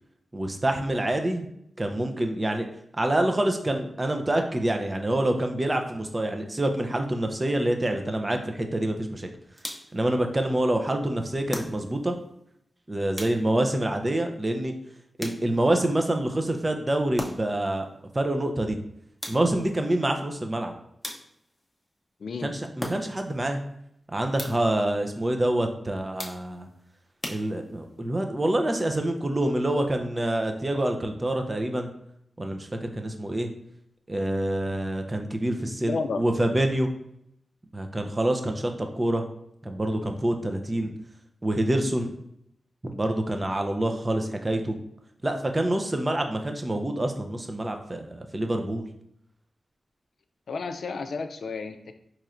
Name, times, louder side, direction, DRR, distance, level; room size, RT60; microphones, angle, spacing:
voice 1, 0.3-1.5 1.8-2.7 3.0-9.3 9.9-12.2 12.9-14.7 15.2-17.9 18.1-18.8 19.3-20.7 22.4-23.6 24.1-26.7 27.3-31.9 32.4-33.5 34.1-36.9 37.7-39.2 39.6-40.9 41.4-42.1 42.8-44.8 45.2-48.8, right 1 dB, 30° right, 5 dB, 0.5 m, -26 dB
sound 1, 9.6-10.1 11.5-12.1 13.2-13.7 15.2-15.8 17.2-17.7 19.2-19.7 21.0-21.6 22.8-23.3 24.4-24.8 26.2-26.7 27.2-27.9, left 1 dB, 20° left, 0.7 m, -38 dB
voice 2, 35.6-36.2 50.5-51.9, left 4 dB, 80° left, 8 dB, 0.3 m, -32 dB
4.2 x 3.0 x 2.5 m, 0.74 s
cardioid pair, 50°, 0 cm